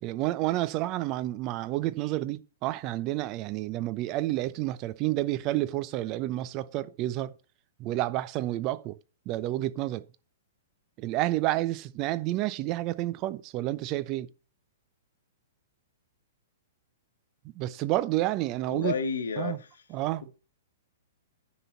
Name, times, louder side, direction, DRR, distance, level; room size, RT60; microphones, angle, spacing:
voice 1, 0.0-7.3 7.8-9.0 9.3-10.0 11.0-14.3 17.5-19.0 19.4-19.6 19.9-20.3, right 16 dB, 35° right, 0.7 m, -30 dB
voice 2, 18.7-19.7, left 5 dB, 75° left, 1.6 m, -31 dB
9.8 x 5.3 x 5.5 m
hypercardioid pair, 115°, 0 cm